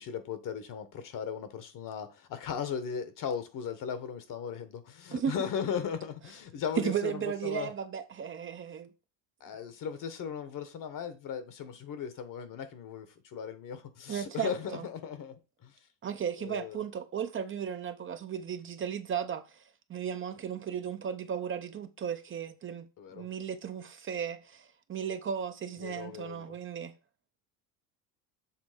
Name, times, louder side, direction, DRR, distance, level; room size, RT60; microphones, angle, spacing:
voice 1, 0.0-7.7 9.4-15.3 15.6-15.7 16.4-16.8 23.0-23.3 25.8-26.6, left 7 dB, 50° left, 1.2 m, -37 dB
voice 2, 6.8-8.9 14.1-14.9 16.0-22.9 23.1-26.9, right 8 dB, 30° right, 0.6 m, -35 dB
7.3 x 3.4 x 5.0 m
cardioid pair, 110°, 41 cm